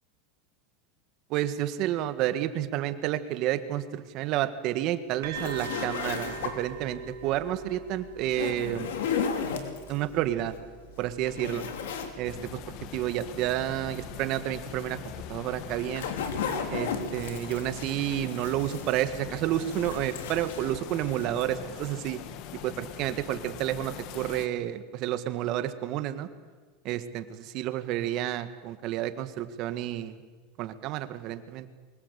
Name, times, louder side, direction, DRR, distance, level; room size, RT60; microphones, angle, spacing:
voice 1, 1.3-8.9 9.9-10.6 11.0-11.7 12.2-12.6 12.9-15.0 15.3-16.1 16.7-22.2 22.5-26.3 26.8-30.2 30.6-31.7, right 13 dB, 50° right, 11 dB, 1.7 m, -30 dB
sound 1, 5.2-12.7, right 5 dB, 85° right, 3.6 m, -43 dB
sound 2, 5.3-6.8 8.2-10.0 10.5-10.6 11.0-12.2 12.5-12.6 15.4-19.2 19.5-21.3, left 6 dB, 85° left, 3.1 m, -34 dB
sound 3, 12.2-24.5, left 11 dB, 50° left, 1.4 m, -42 dB
23.5 x 20.0 x 8.3 m, 1.4 s
supercardioid pair, 140°, 0 cm